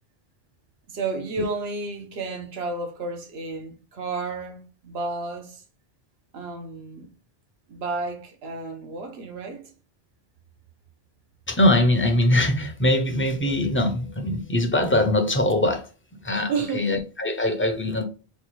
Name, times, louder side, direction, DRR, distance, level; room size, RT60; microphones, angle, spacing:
voice 1, 0.9-5.6 6.3-7.1 7.7-9.7 16.5-17.0, right 3 dB, 80° right, 1.0 m, -32 dB
voice 2, 11.5-15.9 16.2-18.0, left 1 dB, 15° left, 0.4 m, -22 dB
4.4 x 2.3 x 3.1 m
omnidirectional pair, 1.0 m